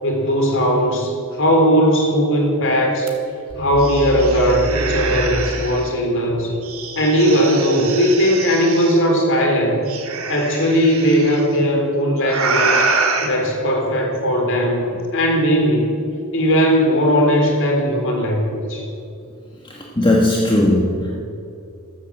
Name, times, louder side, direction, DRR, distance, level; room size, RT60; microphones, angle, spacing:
voice 1, 0.0-3.1 3.6-6.6 6.9-9.8 10.3-12.9 13.2-15.9 16.3-18.9, equal, 65° left, 2 dB, 3.6 m, -18 dB
sound 1, 3.1-3.2 3.5-5.9 6.6-9.0 9.9-11.4 12.2-13.3, right 3 dB, 75° right, 2.1 m, -24 dB
voice 2, 20.0-21.2, left 1 dB, 20° left, -1 dB, 1.4 m, -17 dB
14.0 x 13.0 x 7.3 m, 2.6 s
head